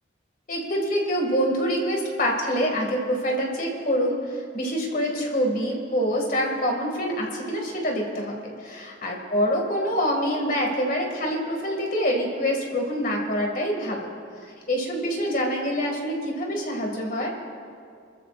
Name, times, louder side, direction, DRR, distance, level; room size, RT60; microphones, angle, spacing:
voice 1, 0.5-14.1 14.4-17.3, equal, 45° left, 1 dB, 2.3 m, -26 dB
28.0 x 14.0 x 2.6 m, 2.3 s
head